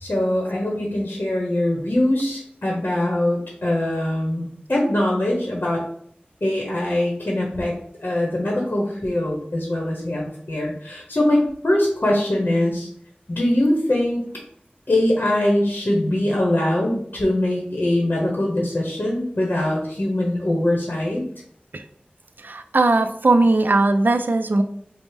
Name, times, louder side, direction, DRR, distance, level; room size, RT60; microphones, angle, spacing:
voice 1, 0.0-5.8 6.4-7.7 8.0-12.9 13.3-14.2 14.9-21.2, left 1 dB, 60° left, -2 dB, 0.8 m, -22 dB
voice 2, 22.4-24.6, right 2 dB, 65° right, 8 dB, 0.3 m, -18 dB
5.1 x 2.0 x 3.2 m, 0.65 s
wide cardioid pair, 45°, 4 cm